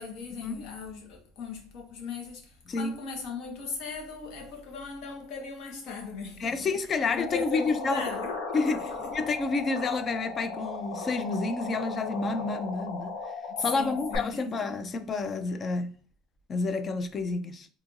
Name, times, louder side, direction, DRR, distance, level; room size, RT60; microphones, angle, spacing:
voice 1, 0.0-6.7 7.1-8.3 8.7-8.9 13.5-14.4 14.7-14.8, left 5 dB, 55° left, 1.3 m, -38 dB
voice 2, 6.4-8.0 8.5-16.0 16.5-17.7, left 3 dB, 25° left, 0.4 m, -30 dB
sound 1, 7.2-14.2, left 4 dB, 85° left, 1.0 m, -37 dB
4.3 x 2.7 x 2.5 m
cardioid pair, 145°, 0 cm